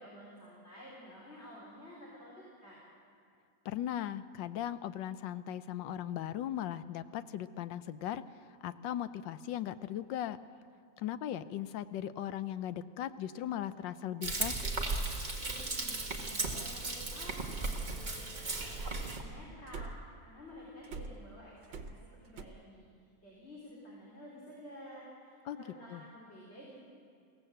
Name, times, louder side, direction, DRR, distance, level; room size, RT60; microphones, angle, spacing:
voice 1, 0.0-2.8 15.1-22.9 23.2-26.8, equal, 35° left, -5 dB, 4.1 m, -52 dB
voice 2, 3.6-8.2 8.6-10.4 11.0-14.7 25.5-25.6 25.9-26.0, left 11 dB, 80° left, 13 dB, 1.4 m, -38 dB
Frying (food), 14.2-19.2, right 2 dB, 25° right, 1.9 m, -36 dB
sound 1, 19.7-20.2 20.8-22.4, right 4 dB, 85° right, 1.8 m, -44 dB
23.0 x 16.5 x 7.8 m, 2.3 s
omnidirectional pair, 2.0 m